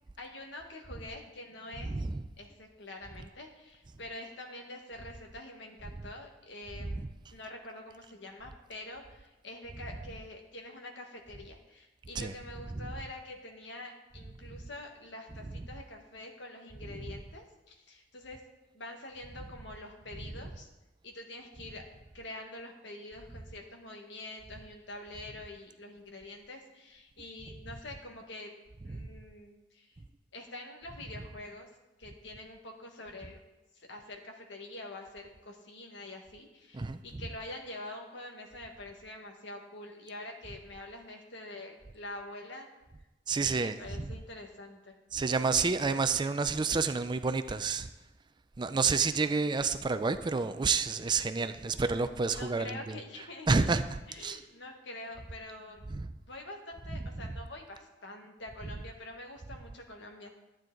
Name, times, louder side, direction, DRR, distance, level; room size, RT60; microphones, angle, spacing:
voice 1, 0.2-1.9 2.4-7.0 7.3-18.4 18.7-20.7 21.0-21.9 22.1-28.5 28.8-29.9 30.3-31.7 32.0-33.4 33.7-42.7 43.4-44.9 51.2-51.4 52.3-53.7 54.1-55.8 56.2-60.3, left 2 dB, 70° left, 2 dB, 1.6 m, -46 dB
voice 2, 1.8-2.3 6.8-7.1 9.8-9.9 12.1-12.3 12.8-12.9 14.5-14.6 15.4-15.7 16.8-17.2 19.4-19.5 20.2-20.5 28.8-29.1 31.0-31.1 36.7-37.3 43.3-44.2 45.1-47.9 48.6-54.4 55.9-56.1 56.9-57.4 58.6-58.8, right 4 dB, 25° right, 10 dB, 0.4 m, -30 dB
12.0 x 9.2 x 3.9 m, 1.1 s
head